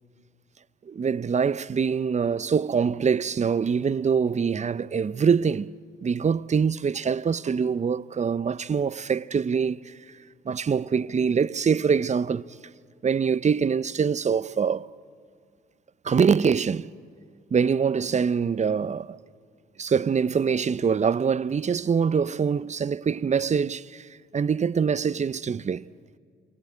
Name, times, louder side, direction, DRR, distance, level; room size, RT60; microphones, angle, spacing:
voice 1, 0.9-5.7 6.0-9.9 10.4-12.4 13.0-14.9 16.0-16.9 17.5-19.2 19.8-25.8, right 6 dB, 35° right, 0.7 m, -24 dB
28.5 x 23.5 x 8.0 m
hypercardioid pair, 50°, 21 cm